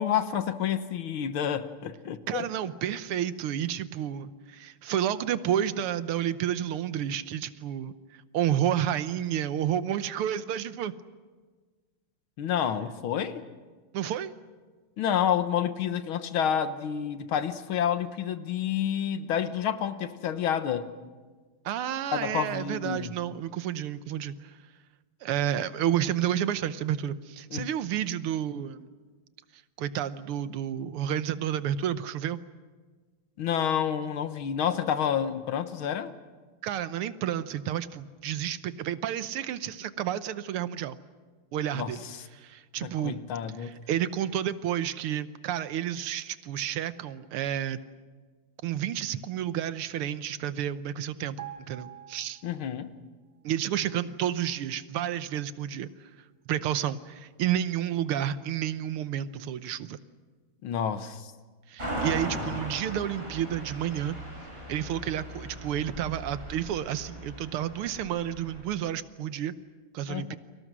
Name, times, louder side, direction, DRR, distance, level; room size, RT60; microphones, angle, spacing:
voice 1, 0.0-2.5 12.4-13.4 15.0-20.9 22.1-23.1 27.5-27.7 33.4-36.1 41.7-42.2 42.8-43.7 52.4-52.9 60.6-61.3 70.1-70.4, left 9 dB, 75° left, 11 dB, 1.9 m, -29 dB
voice 2, 2.3-10.9 13.9-14.3 21.7-24.6 25.2-28.9 29.8-32.4 36.6-41.0 41.5-42.0 42.3-43.2 43.6-47.8 48.6-52.4 53.4-56.1 56.5-60.0 61.7-64.2 64.7-69.6 69.9-70.4, right 10 dB, 90° right, 13 dB, 1.8 m, -30 dB
sound 1, 51.4-53.0 53.3-53.5, right 12 dB, 55° right, 1.3 m, -45 dB
sound 2, 61.8-68.6, right 1 dB, 25° right, 6.8 m, -38 dB
30.0 x 24.5 x 6.2 m, 1.4 s
omnidirectional pair, 2.4 m